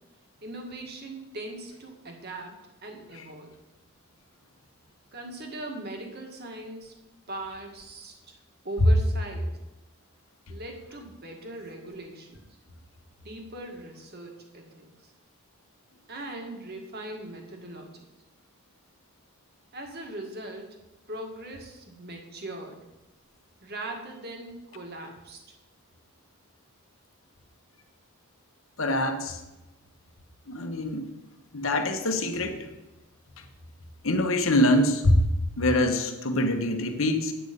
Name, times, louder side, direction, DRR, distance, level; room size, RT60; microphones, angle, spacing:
voice 1, 0.4-3.6 5.1-6.9 7.3-8.4 8.6-9.6 10.5-12.5 13.2-15.1 16.1-18.0 19.7-20.8 21.1-22.9 23.6-25.4, right 1 dB, 50° right, 3 dB, 1.7 m, -40 dB
voice 2, 28.8-29.4 30.5-31.1 31.5-32.7 34.0-35.2 35.6-37.3, left 1 dB, 65° left, 6 dB, 1.2 m, -24 dB
9.2 x 8.3 x 5.2 m, 1.0 s
head